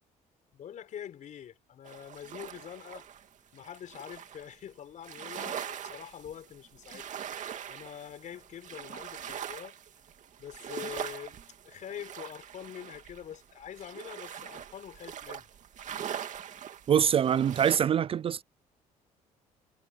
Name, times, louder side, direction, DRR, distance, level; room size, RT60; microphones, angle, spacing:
voice 1, 0.5-3.1 3.5-7.1 7.4-9.8 10.4-15.5, left 9 dB, 60° left, 5.4 m, -45 dB
sound 1, 1.8-4.6 5.0-17.8, right 9 dB, 55° right, 2.5 m, -42 dB
voice 2, 16.9-18.4, right 9 dB, 40° right, 0.4 m, -24 dB
cardioid pair, 90°, 15 cm